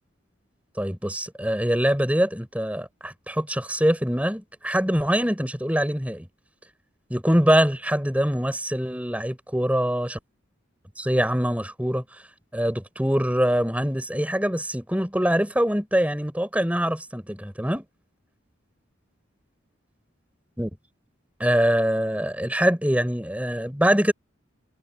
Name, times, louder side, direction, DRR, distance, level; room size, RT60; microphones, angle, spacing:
voice 1, 0.8-6.3 7.1-10.2 11.0-12.0 12.5-17.8 20.6-20.7 21.4-24.1, equal, 5° right, 5.1 m, -24 dB
head